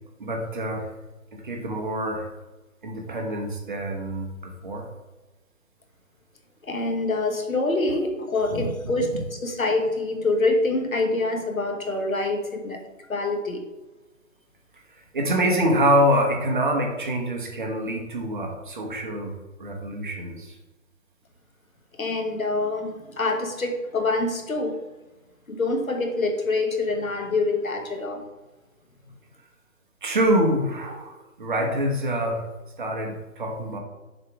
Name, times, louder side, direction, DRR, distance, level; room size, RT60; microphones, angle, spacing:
voice 1, 0.2-0.9 1.3-2.3 2.8-4.9 8.5-8.7 15.1-20.5 30.0-32.4 32.8-33.8, equal, 35° right, 2 dB, 1.1 m, -25 dB
voice 2, 6.6-12.8 13.1-13.6 21.9-24.8 25.5-28.2, left 2 dB, 80° left, 4 dB, 1.3 m, -25 dB
6.7 x 3.1 x 4.7 m, 1.1 s
figure-of-eight pair, 150°, 41 cm